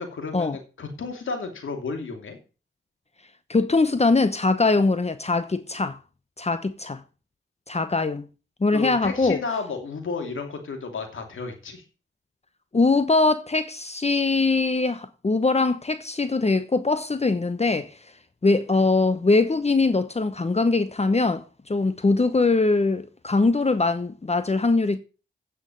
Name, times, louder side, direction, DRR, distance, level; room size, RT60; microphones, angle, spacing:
voice 1, 0.0-2.4 8.7-11.8, left 4 dB, 80° left, 2.8 m, -32 dB
voice 2, 3.5-6.0 6.4-7.0 7.7-8.3 8.6-9.4 12.7-17.9 18.4-25.0, left 3 dB, 30° left, 1.0 m, -22 dB
9.0 x 6.4 x 7.6 m
cardioid pair, 45°, 20 cm